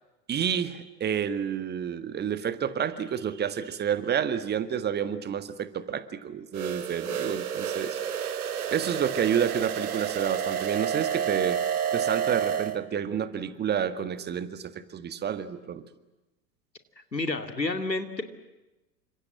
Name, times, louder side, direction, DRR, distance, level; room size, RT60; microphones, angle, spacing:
voice 1, 0.3-8.3 8.7-11.6 11.9-15.8, right 8 dB, 20° right, 12 dB, 1.7 m, -29 dB
sound 1, 6.5-12.8, right 8 dB, 60° right, 2.2 m, -30 dB
voice 2, 17.1-18.2, left 2 dB, 85° left, 8 dB, 2.8 m, -29 dB
29.5 x 26.0 x 7.7 m, 1.0 s
figure-of-eight pair, 95°, 49 cm